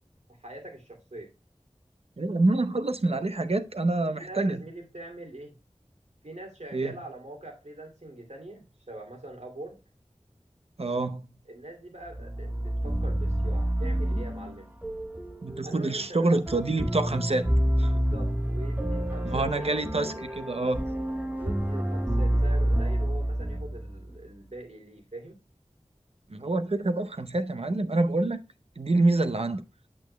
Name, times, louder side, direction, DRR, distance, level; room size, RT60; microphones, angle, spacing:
voice 1, 0.4-1.3 4.1-5.6 6.2-9.8 11.5-14.7 15.6-16.4 17.9-20.2 21.4-25.4, right 1 dB, 80° right, 2.6 m, -43 dB
voice 2, 2.2-4.6 6.7-6.9 10.8-11.3 15.4-17.5 17.8-17.9 19.2-20.8 26.3-28.4 28.8-29.6, right 2 dB, 60° right, 0.7 m, -26 dB
sound 1, 12.1-24.1, right 1 dB, 15° right, 1.2 m, -28 dB
8.7 x 8.3 x 2.2 m
wide cardioid pair, 45°, 12 cm